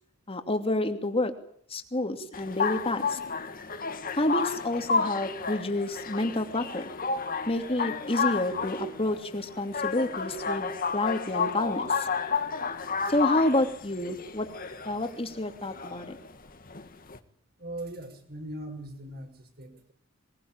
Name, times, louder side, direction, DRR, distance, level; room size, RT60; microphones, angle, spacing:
voice 1, 0.3-1.3 1.7-3.2 4.1-6.9 7.5-12.1 13.1-14.5 14.8-16.2, left 1 dB, 30° left, 6 dB, 2.7 m, -29 dB
sound 1, 2.3-17.2, left 5 dB, 45° left, 1.9 m, -31 dB
voice 2, 17.6-19.9, right 1 dB, 50° right, 6 dB, 5.9 m, -40 dB
22.0 x 21.5 x 8.9 m, 0.64 s
head